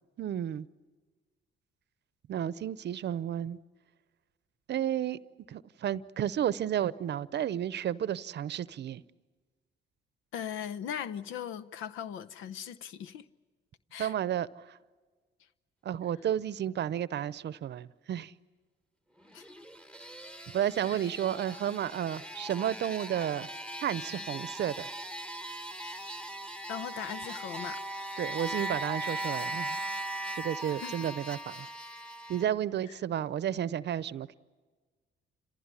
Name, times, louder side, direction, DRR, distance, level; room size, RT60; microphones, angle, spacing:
voice 1, 0.2-0.7 2.3-3.6 4.7-5.2 5.5-9.0 14.0-14.8 15.8-18.3 20.5-23.5 23.8-24.9 28.2-29.9 30.4-31.7 32.3-34.3, right 10 dB, 60° right, 0.7 m, -32 dB
voice 2, 10.3-13.3 13.9-14.1 19.3-19.5 20.9-21.0 26.7-27.8 30.8-30.9, left 9 dB, 90° left, 0.8 m, -39 dB
sound 1, 19.2-32.5, right 1 dB, 5° left, 1.1 m, -39 dB
29.5 x 15.5 x 9.8 m
cardioid pair, 90°, 20 cm